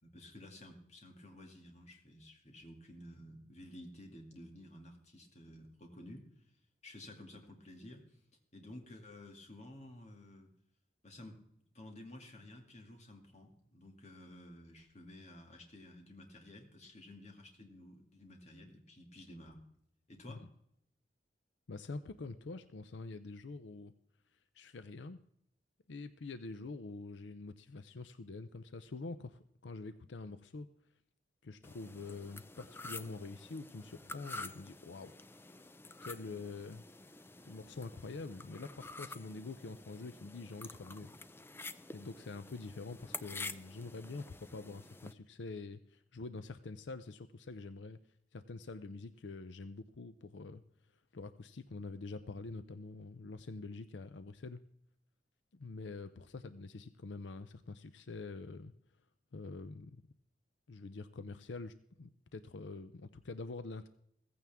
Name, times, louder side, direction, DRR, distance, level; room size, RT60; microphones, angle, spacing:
voice 1, 0.0-6.5 6.8-8.2 8.5-10.5 11.0-11.4 11.7-19.6 20.1-20.5, left 1 dB, 40° left, 2 dB, 2.4 m, -53 dB
voice 2, 21.7-23.9 24.5-25.2 25.9-30.7 31.4-35.1 36.0-36.8 37.4-41.1 41.9-48.0 48.3-50.6 51.1-54.6 55.5-58.7 59.3-60.0 60.7-63.9, left 3 dB, 85° left, 12 dB, 0.6 m, -46 dB
sound 1, 31.6-45.1, left 3 dB, 15° left, 0.5 m, -49 dB
16.0 x 15.0 x 3.6 m, 0.73 s
head